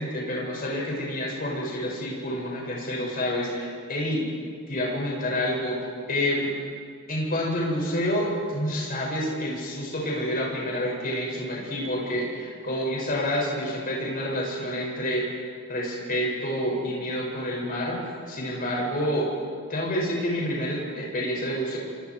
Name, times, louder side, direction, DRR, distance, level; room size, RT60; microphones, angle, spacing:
voice 1, 0.0-4.2 4.7-5.8 6.1-6.5 7.1-15.2 15.7-19.3 19.7-21.8, equal, 40° left, -3 dB, 6.8 m, -28 dB
28.5 x 24.0 x 4.9 m, 2.1 s
head